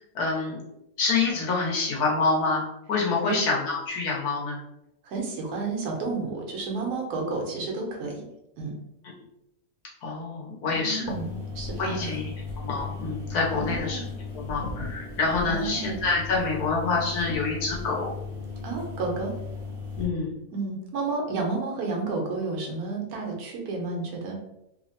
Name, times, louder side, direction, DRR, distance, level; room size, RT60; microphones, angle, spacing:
voice 1, 0.1-0.6 1.0-4.6 10.0-11.1 11.8-12.2 12.6-14.0 14.3-18.1 20.0-20.3, left 4 dB, 85° left, -3 dB, 1.4 m, -27 dB
voice 2, 5.0-8.3 8.6-8.7 10.6-12.2 13.5-14.0 15.4-15.9 18.6-19.3 20.5-24.4, right 3 dB, 75° right, 0 dB, 1.2 m, -31 dB
sound 1, 11.0-20.0, left 4 dB, 40° left, 0.9 m, -36 dB
3.3 x 2.1 x 2.7 m, 0.84 s
omnidirectional pair, 1.6 m